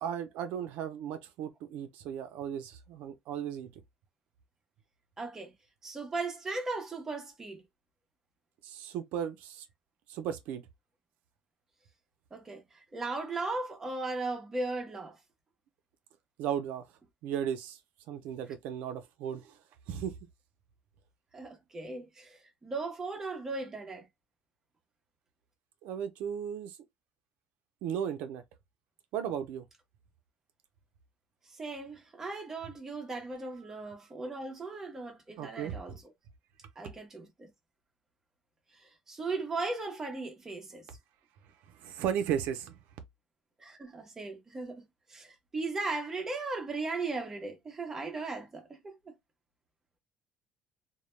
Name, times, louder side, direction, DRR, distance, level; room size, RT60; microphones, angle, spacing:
voice 1, 0.0-3.7 8.6-9.6 10.1-10.6 16.4-16.8 17.2-17.8 18.1-19.5 19.9-20.2 25.8-26.8 27.8-28.4 29.1-29.6 35.4-35.8 41.8-42.8, right 9 dB, 85° right, 0.4 m, -35 dB
voice 2, 5.2-5.5 5.8-7.6 12.3-15.2 21.3-24.1 31.6-36.0 36.8-37.5 38.8-40.8 43.6-44.8 45.1-49.1, right 3 dB, 15° right, 0.7 m, -37 dB
2.1 x 2.0 x 3.0 m
cardioid pair, 175°, 3 cm